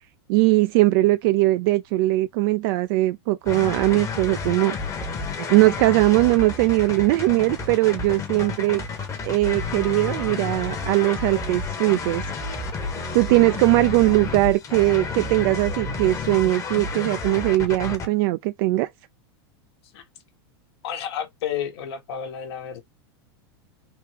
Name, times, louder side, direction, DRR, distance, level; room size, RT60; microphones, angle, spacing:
voice 1, 0.3-4.8 5.5-8.8 9.2-12.3 13.1-18.9, right 19 dB, 55° right, 0.4 m, -20 dB
sound 1, 3.5-18.1, left 3 dB, 25° left, 0.9 m, -31 dB
voice 2, 20.8-22.8, left 9 dB, 70° left, 1.1 m, -31 dB
3.5 x 2.3 x 3.2 m
supercardioid pair, 125°, 14 cm